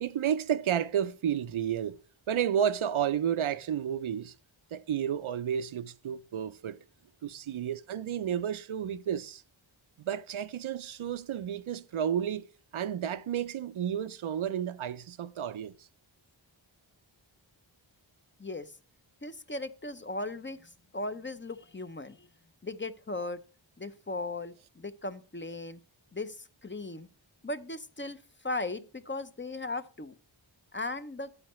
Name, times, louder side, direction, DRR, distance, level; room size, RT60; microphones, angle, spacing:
voice 1, 0.0-2.0 2.3-4.3 4.7-6.8 7.2-9.4 10.0-12.4 12.7-15.7, right 9 dB, 80° right, 0.6 m, -31 dB
voice 2, 18.4-18.7 19.2-22.3 22.6-23.4 23.8-25.8 26.1-27.1 27.4-30.2 30.7-31.3, left 2 dB, 25° left, 0.6 m, -37 dB
11.5 x 8.8 x 3.1 m
wide cardioid pair, 60°, 48 cm